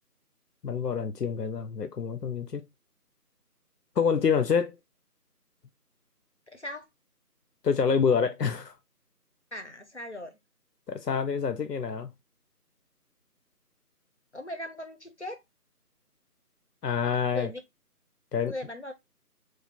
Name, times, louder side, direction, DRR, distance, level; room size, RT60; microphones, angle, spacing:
voice 1, 0.6-2.7 4.0-4.7 7.6-8.7 10.9-12.1 16.8-17.5 18.3-18.5, left 6 dB, 90° left, 0.7 m, -27 dB
voice 2, 6.5-6.9 9.5-10.4 14.3-15.4 17.3-17.6 18.5-18.9, left 1 dB, 45° left, 0.6 m, -38 dB
3.3 x 2.3 x 4.2 m
figure-of-eight pair, 180°, 47 cm